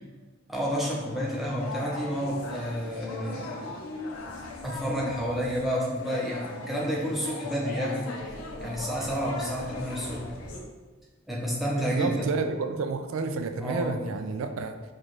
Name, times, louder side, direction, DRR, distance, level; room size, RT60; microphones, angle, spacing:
voice 1, 0.5-3.7 4.6-10.3 11.3-12.3 13.6-13.9, equal, ahead, -5 dB, 0.6 m, -30 dB
sound 1, 1.0-10.6, left 2 dB, 80° left, 0.6 m, -39 dB
voice 2, 11.7-14.7, right 4 dB, 75° right, 7 dB, 0.3 m, -30 dB
4.5 x 2.4 x 3.0 m, 1.3 s
head